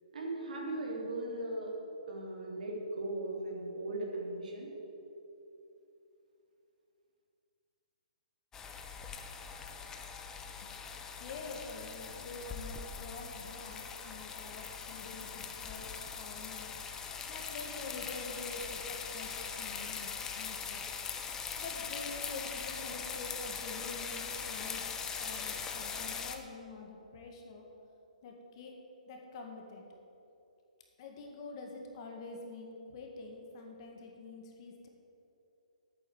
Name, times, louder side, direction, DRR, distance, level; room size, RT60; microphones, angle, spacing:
voice 1, 0.1-1.7 2.1-4.7, right 1 dB, 70° right, -1 dB, 3.1 m, -38 dB
sound 1, 8.5-26.4, left 6 dB, 10° left, 0.7 m, -41 dB
voice 2, 11.2-16.7 17.3-20.8 21.6-24.8 25.2-27.7 28.2-28.8 29.1-29.8 31.0-34.9, left 3 dB, 40° left, 1 dB, 1.9 m, -46 dB
8.8 x 8.4 x 8.0 m, 2.9 s
hypercardioid pair, 155°, 4 cm